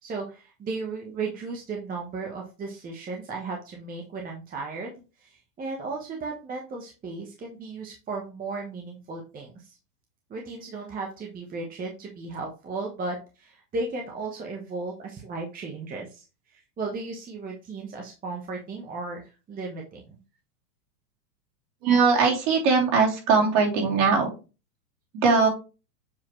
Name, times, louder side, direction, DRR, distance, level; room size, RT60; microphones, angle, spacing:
voice 1, 0.0-4.9 5.2-9.7 10.3-16.2 16.8-19.2 19.5-20.2, right 3 dB, 20° right, 1 dB, 1.1 m, -35 dB
voice 2, 21.8-24.3 25.2-25.5, right 5 dB, 50° right, -1 dB, 3.1 m, -20 dB
7.5 x 4.2 x 3.1 m, 0.31 s
hypercardioid pair, 125°, 48 cm